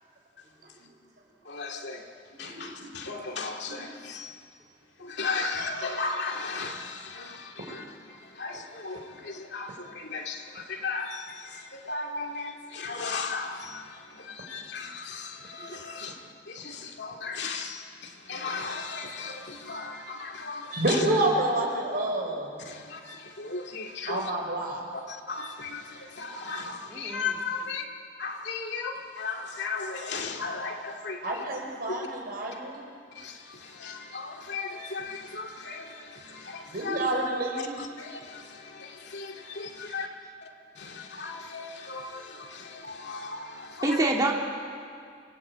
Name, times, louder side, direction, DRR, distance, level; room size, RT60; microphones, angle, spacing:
voice 1, 1.5-2.1 2.4-4.5 5.0-7.8 8.1-21.0 22.6-24.3 24.9-27.8 28.2-31.4 31.9-32.1 33.2-37.0 37.6-40.1 40.8-44.0, left 4 dB, 65° left, 2 dB, 2.5 m, -36 dB
voice 2, 20.7-22.5 24.1-24.8 31.2-32.9 36.7-37.8, right 1 dB, 55° right, 0 dB, 5.5 m, -28 dB
voice 3, 26.9-27.3 43.8-44.3, right 2 dB, 20° right, -1 dB, 2.5 m, -26 dB
28.0 x 19.5 x 8.7 m, 2.2 s
head